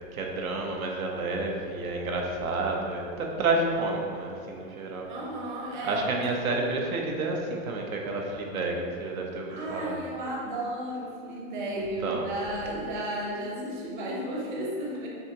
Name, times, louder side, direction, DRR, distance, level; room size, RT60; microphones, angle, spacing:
voice 1, 0.1-5.1 5.9-10.0 11.7-12.2, right 2 dB, 85° right, 0 dB, 1.1 m, -30 dB
voice 2, 5.1-6.2 6.5-6.6 9.5-15.1, right 1 dB, 35° right, -3 dB, 1.0 m, -33 dB
6.5 x 5.7 x 2.9 m, 2.2 s
supercardioid pair, 175°, 41 cm